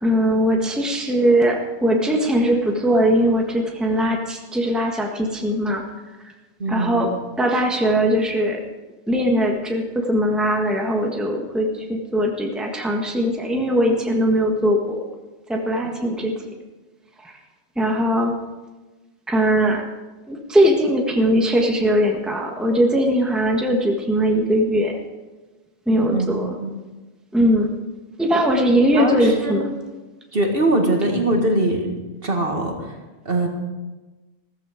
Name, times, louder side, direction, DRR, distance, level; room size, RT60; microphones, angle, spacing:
voice 1, 0.0-5.8 6.7-7.1 7.4-8.6 9.1-15.0 15.5-16.3 17.2-17.3 17.7-18.3 19.3-19.8 20.3-24.9 25.9-26.5 27.3-27.7 28.2-29.6, equal, ahead, 1 dB, 1.6 m, -20 dB
voice 2, 6.6-7.1 16.2-16.3 26.1-26.7 28.9-29.7 30.3-31.9 32.2-32.9 33.3-33.5, right 1 dB, 45° right, 2 dB, 2.0 m, -22 dB
15.0 x 14.5 x 5.1 m, 1.2 s
omnidirectional pair, 1.4 m